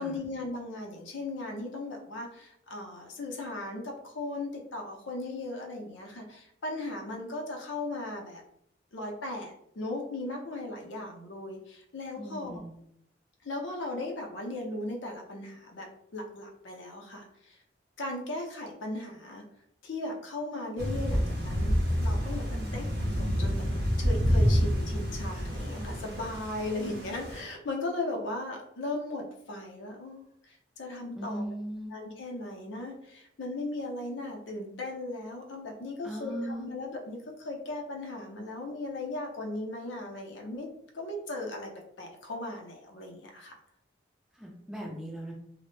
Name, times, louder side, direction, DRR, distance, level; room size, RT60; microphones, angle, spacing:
voice 1, 0.0-8.4 8.9-12.6 13.4-15.9 16.1-17.6 18.0-19.4 19.8-22.9 23.2-23.6 24.0-31.5 31.9-40.7 40.9-41.7 42.0-43.5, left 2 dB, 80° left, 1 dB, 0.6 m, -37 dB
voice 2, 12.2-12.7 22.5-22.9 31.1-31.9 36.0-36.7 44.4-45.3, right 1 dB, 5° right, -3 dB, 0.5 m, -38 dB
Thunder / Rain, 20.8-27.4, equal, 55° right, 0.6 m, -28 dB
2.0 x 2.0 x 3.1 m, 0.73 s
head